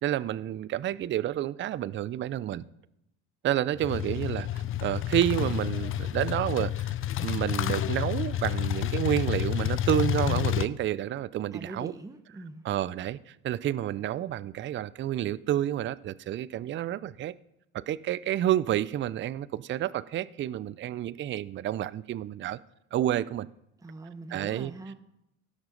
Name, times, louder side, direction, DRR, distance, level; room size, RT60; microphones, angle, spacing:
voice 1, 0.0-2.6 3.4-6.9 7.2-11.9 12.6-17.3 17.7-22.6 22.9-23.5 24.3-24.7, right 12 dB, 30° right, 0.4 m, -29 dB
sound 1, 3.8-10.7, left 12 dB, 35° left, 0.5 m, -29 dB
voice 2, 11.5-12.6 23.8-24.9, right 2 dB, 10° right, 0.9 m, -42 dB
17.0 x 6.1 x 3.9 m
hypercardioid pair, 70°, 38 cm